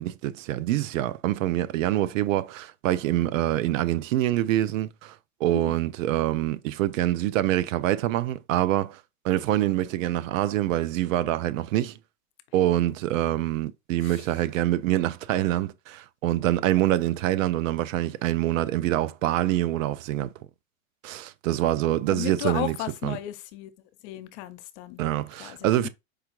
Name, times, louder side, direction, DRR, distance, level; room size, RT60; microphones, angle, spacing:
voice 1, 0.0-5.2 5.4-9.0 9.2-12.0 12.5-20.3 21.0-22.8 23.0-23.2 25.0-25.9, right 14 dB, 70° right, 0.5 m, -25 dB
voice 2, 22.1-23.7 24.0-25.0 25.4-25.9, left 14 dB, 55° left, 0.7 m, -35 dB
4.8 x 2.3 x 3.0 m
hypercardioid pair, 110°, 41 cm